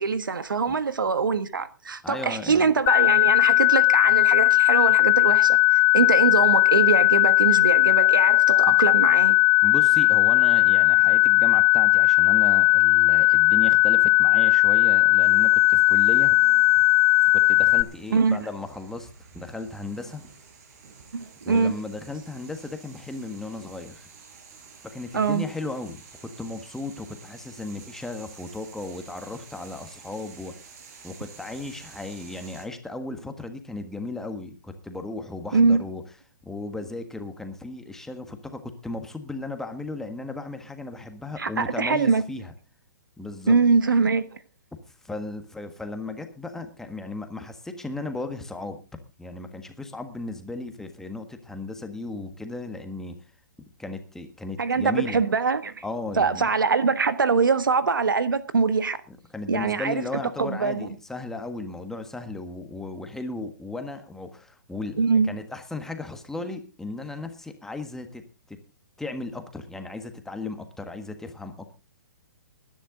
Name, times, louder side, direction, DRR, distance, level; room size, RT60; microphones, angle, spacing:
voice 1, 0.0-9.4 18.1-18.4 21.1-21.8 25.1-25.4 35.5-35.8 41.4-42.2 43.5-44.4 54.6-55.8 56.2-59.0 59.5-60.0 60.4-60.9 65.0-65.3, right 5 dB, 90° right, 1.5 m, -23 dB
voice 2, 2.0-2.7 8.7-8.8 9.6-16.4 17.3-19.1 19.3-20.3 21.4-24.1 24.9-30.5 31.0-36.0 36.4-42.5 43.2-43.6 45.0-48.8 49.2-53.2 53.8-55.2 55.8-56.5 59.3-68.6 69.0-71.7, left 2 dB, 5° left, 1.5 m, -35 dB
sound 1, 2.9-17.8, left 26 dB, 30° left, 0.7 m, -18 dB
sound 2, 15.2-32.6, right 5 dB, 50° right, 5.5 m, -50 dB
20.0 x 10.5 x 3.8 m
hypercardioid pair, 145°, 11 cm